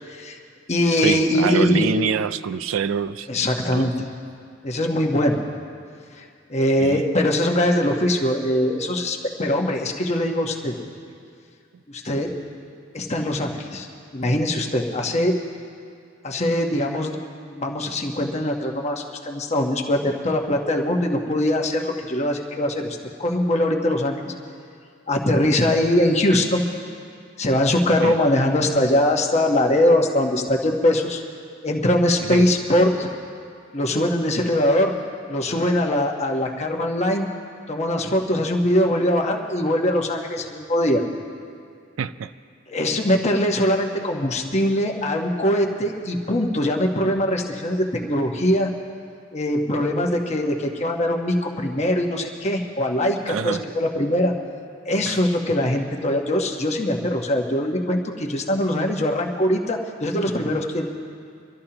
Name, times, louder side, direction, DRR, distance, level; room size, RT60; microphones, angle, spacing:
voice 1, 0.1-0.4 0.7-1.9 3.3-3.9 4.6-5.4 6.2-6.3 6.5-10.8 11.9-12.3 12.9-13.9 14.1-15.4 16.2-24.3 25.1-26.6 27.4-31.2 31.6-33.1 33.7-35.0 35.3-37.3 37.7-41.0 42.7-48.7 49.3-54.3 54.8-60.9, left 1 dB, 35° left, 2 dB, 1.1 m, -22 dB
voice 2, 1.0-3.3 3.7-3.9 6.8-7.0 28.0-28.2 32.2-32.4 42.0-42.3 53.3-53.6 55.1-55.2, right 6 dB, 75° right, 14 dB, 0.4 m, -26 dB
24.5 x 13.0 x 2.9 m, 2.3 s
head